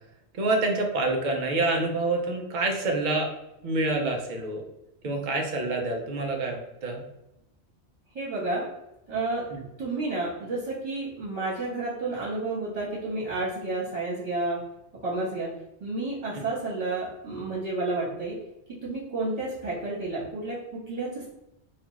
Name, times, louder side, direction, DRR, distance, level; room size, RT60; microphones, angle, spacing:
voice 1, 0.3-3.3 3.6-4.6 5.0-7.0 9.5-9.6 16.3-16.4, right 2 dB, 55° right, 2 dB, 0.6 m, -27 dB
voice 2, 8.1-8.6 9.1-9.4 9.8-14.6 15.0-15.5 15.8-18.3 18.8-20.6 20.9-21.3, right 2 dB, 35° right, -8 dB, 1.2 m, -30 dB
2.5 x 2.3 x 3.0 m, 0.87 s
omnidirectional pair, 1.1 m